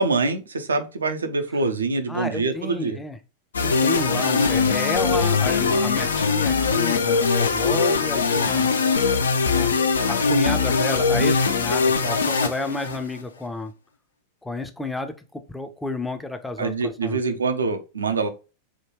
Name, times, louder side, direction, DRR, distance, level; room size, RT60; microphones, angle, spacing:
voice 1, 0.0-3.0 3.6-3.7 16.6-18.3, right 3 dB, 75° right, 0.5 m, -25 dB
voice 2, 2.1-3.2 3.6-8.7 9.5-9.7 10.1-13.7 14.4-17.2, left 2 dB, 5° left, 0.5 m, -31 dB
sound 1, 3.5-13.2, left 4 dB, 70° left, 0.4 m, -21 dB
3.5 x 2.2 x 3.0 m
figure-of-eight pair, 90°, 0 cm